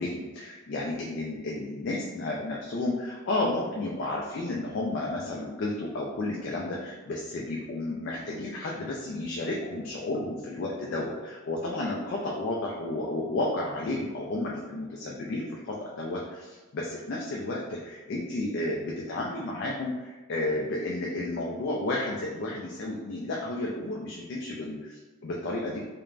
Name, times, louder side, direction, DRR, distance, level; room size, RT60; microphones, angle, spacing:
voice 1, 0.0-25.8, left 2 dB, 55° left, -3 dB, 0.3 m, -32 dB
2.4 x 2.1 x 3.1 m, 1.2 s
head